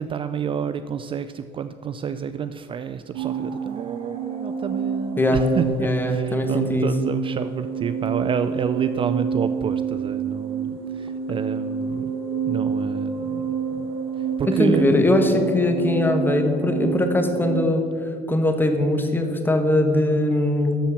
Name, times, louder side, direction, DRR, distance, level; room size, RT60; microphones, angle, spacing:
voice 1, 0.0-12.1 12.5-13.9 14.2-15.1, right 7 dB, 35° right, 11 dB, 0.4 m, -29 dB
sound 1, 3.1-17.7, right 6 dB, 85° right, 1.5 m, -28 dB
voice 2, 5.7-6.9 14.6-17.9 18.3-20.7, left 1 dB, 15° left, 5 dB, 1.3 m, -21 dB
12.5 x 4.4 x 7.2 m, 2.5 s
cardioid pair, 105°, 16 cm